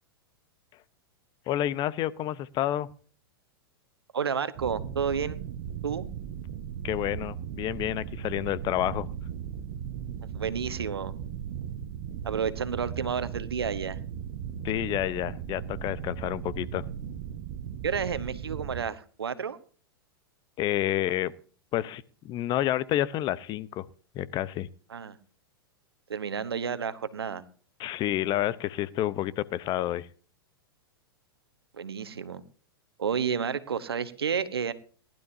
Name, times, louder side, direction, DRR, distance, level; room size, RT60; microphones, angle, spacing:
voice 1, 1.5-2.9 6.8-9.1 14.6-16.9 20.6-21.3 21.7-23.8 24.1-24.7 27.8-30.1, left 13 dB, 35° left, 17 dB, 0.9 m, -29 dB
voice 2, 4.1-5.4 5.8-6.1 10.3-11.1 12.2-14.0 17.8-19.6 24.9-25.2 26.1-27.4 31.7-32.4 33.0-34.7, right 6 dB, 85° right, 13 dB, 1.2 m, -31 dB
sound 1, 4.6-18.8, right 8 dB, 55° right, 1.3 m, -37 dB
19.0 x 12.0 x 2.8 m, 0.40 s
hypercardioid pair, 105°, 13 cm